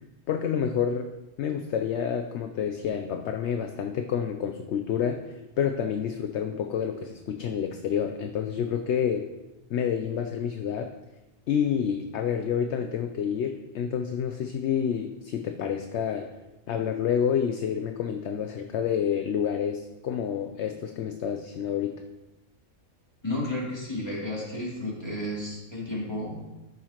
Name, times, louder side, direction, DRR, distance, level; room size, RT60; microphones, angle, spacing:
voice 1, 0.3-1.1 1.4-5.2 5.6-9.3 9.7-10.9 11.5-16.3 16.7-22.0, left 8 dB, 65° left, 6 dB, 0.8 m, -28 dB
voice 2, 23.2-26.5, left 1 dB, 20° left, -6 dB, 2.8 m, -32 dB
13.5 x 6.4 x 2.9 m, 1.0 s
omnidirectional pair, 1.4 m